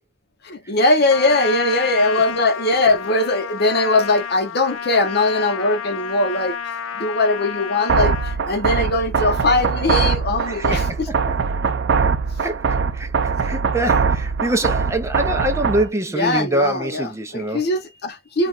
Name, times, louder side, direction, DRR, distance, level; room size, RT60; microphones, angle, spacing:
voice 1, 0.4-6.5 7.0-10.8 16.1-17.0 17.3-18.5, left 2 dB, 55° left, 0.8 m, -20 dB
Trumpet, 1.1-8.4, left 7 dB, 85° left, 0.4 m, -30 dB
sound 1, 7.9-15.9, right 5 dB, 60° right, 0.5 m, -21 dB
voice 2, 10.4-11.4 12.4-17.7 18.4-18.5, right 1 dB, 15° right, 0.5 m, -25 dB
3.3 x 2.4 x 2.4 m
head